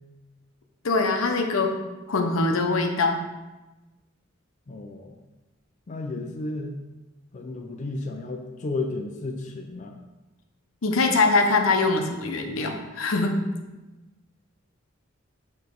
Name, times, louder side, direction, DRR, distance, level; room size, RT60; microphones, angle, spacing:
voice 1, 0.8-1.8 2.1-3.2 6.2-6.3 10.8-13.4, left 3 dB, 80° left, 4 dB, 0.7 m, -23 dB
voice 2, 4.7-5.2 5.9-6.7 7.3-9.9, left 2 dB, 35° left, 2 dB, 0.4 m, -33 dB
7.2 x 3.1 x 4.6 m, 1.1 s
head